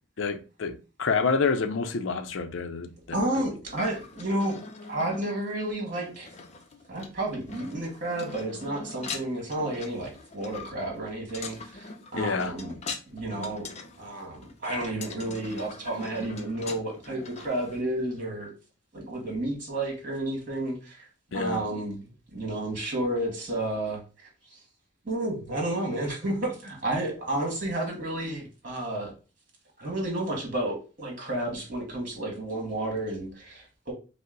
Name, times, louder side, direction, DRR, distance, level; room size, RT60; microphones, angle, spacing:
voice 1, 0.2-3.2 12.1-12.5 21.3-21.6, left 4 dB, 85° left, 0.5 m, -28 dB
voice 2, 3.1-4.6 4.9-6.3 6.9-12.8 13.1-18.5 18.9-21.1 21.3-24.6 25.0-29.1 29.8-33.9, right 1 dB, 45° right, 1.8 m, -31 dB
sound 1, 3.7-17.8, left 4 dB, 35° left, 0.5 m, -42 dB
5.2 x 2.1 x 3.8 m
head